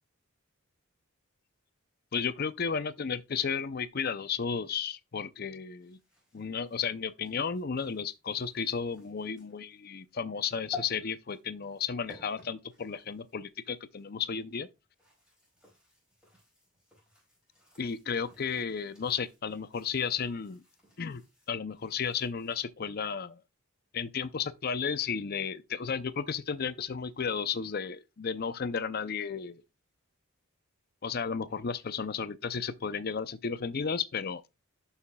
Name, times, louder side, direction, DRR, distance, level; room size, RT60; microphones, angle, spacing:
voice 1, 2.1-6.0 6.3-14.7 17.8-20.6 21.0-21.2 21.5-23.4 23.9-29.6 31.0-34.4, left 6 dB, 45° left, 0.5 m, -33 dB
sound 1, 5.7-14.1 14.8-22.6, left 4 dB, 5° right, 4.7 m, -52 dB
12.0 x 5.7 x 2.3 m
head